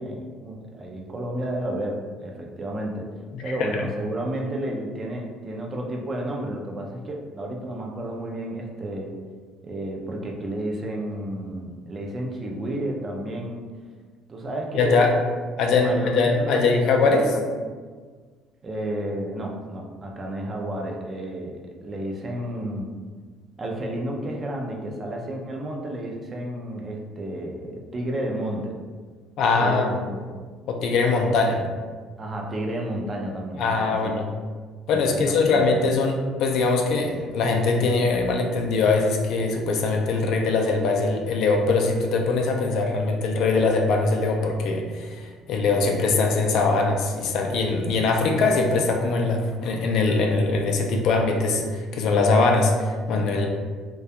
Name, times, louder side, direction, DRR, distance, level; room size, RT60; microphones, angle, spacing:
voice 1, 0.0-3.1 3.4-9.2 9.6-13.6 14.3-15.1 15.8-17.5 18.6-22.9 23.6-28.8 29.6-30.4 32.2-34.2 34.9-35.6, right 1 dB, 25° right, 0 dB, 0.4 m, -31 dB
voice 2, 3.3-3.8 14.7-15.1 15.6-17.3 29.4-29.9 30.7-31.6 33.6-34.3 34.9-53.5, left 3 dB, 65° left, 2 dB, 0.3 m, -22 dB
2.3 x 2.2 x 2.7 m, 1.5 s
cardioid pair, 130°, 0 cm